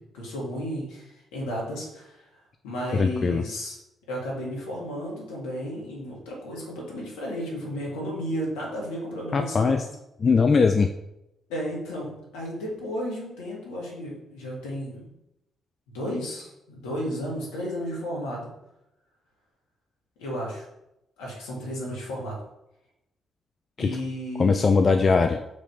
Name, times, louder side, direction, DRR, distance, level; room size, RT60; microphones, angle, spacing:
voice 1, 0.0-2.2 2.6-3.8 4.1-9.8 11.5-15.1 15.9-18.5 20.2-20.7 21.2-22.4 23.8-24.6, equal, 75° left, -3 dB, 1.8 m, -33 dB
voice 2, 2.9-3.4 9.3-9.8 10.2-10.9 23.8-23.9 24.4-25.4, left 4 dB, 45° left, 6 dB, 0.4 m, -20 dB
5.2 x 3.3 x 5.4 m, 0.86 s
hypercardioid pair, 40°, 0 cm